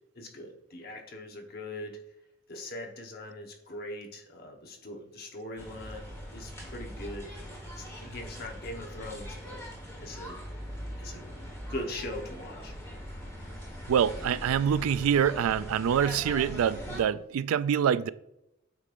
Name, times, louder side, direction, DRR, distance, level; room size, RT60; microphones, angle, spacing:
voice 1, 0.1-2.0 2.5-6.1 6.3-7.3 7.8-9.6 10.0-10.4 11.0-11.2 11.7-12.7, left 1 dB, 45° left, 1.2 m, -41 dB
sound 1, 5.6-17.0, equal, 15° left, 1.4 m, -41 dB
voice 2, 13.9-18.1, right 8 dB, 90° right, 0.3 m, -25 dB
8.2 x 5.2 x 2.6 m
head